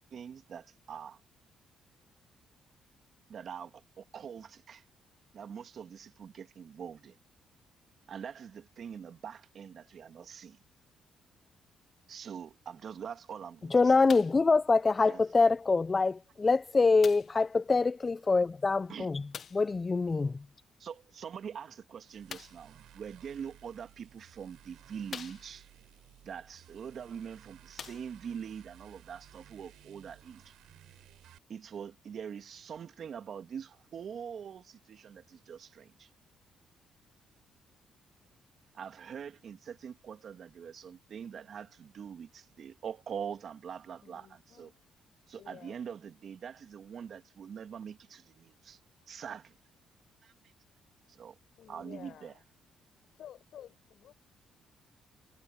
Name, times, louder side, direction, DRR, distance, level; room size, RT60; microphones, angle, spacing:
voice 1, 0.1-1.2 3.3-4.8 5.3-7.2 8.1-10.6 12.1-13.9 15.0-15.2 18.9-19.1 20.8-25.7 26.2-30.5 31.5-36.1 38.7-44.7 45.3-48.8 49.1-49.4 51.1-51.3 51.7-52.3, right 7 dB, 55° right, 2.1 m, -44 dB
voice 2, 13.7-19.2 19.5-20.4, left 4 dB, 30° left, 0.4 m, -25 dB
sound 1, 14.1-14.5 15.4-15.5 17.0-17.4 19.3-19.7 22.3-22.7 23.7-23.8 24.4-24.5 25.1-25.8 27.1-27.2 27.7-28.4 29.2-29.3, left 7 dB, 55° left, 0.9 m, -45 dB
sound 2, 22.0-31.4, right 13 dB, 85° right, 7.4 m, -57 dB
voice 3, 44.0-44.9 45.4-45.8 46.9-47.1 51.6-52.4 53.1-54.1, left 10 dB, 70° left, 5.7 m, -52 dB
cardioid pair, 90°, 0 cm